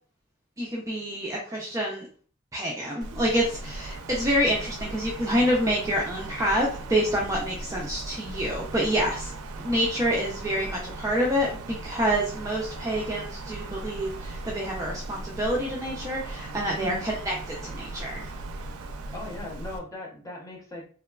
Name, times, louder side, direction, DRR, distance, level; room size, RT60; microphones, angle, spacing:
voice 1, 0.6-2.1 2.5-9.3 9.6-18.3, equal, 15° right, -3 dB, 0.3 m, -27 dB
Wind, 3.0-19.8, right 2 dB, 85° right, 0.4 m, -38 dB
voice 2, 16.6-17.1 19.1-20.9, left 2 dB, 15° left, -4 dB, 0.7 m, -38 dB
2.9 x 2.2 x 2.2 m, 0.43 s
head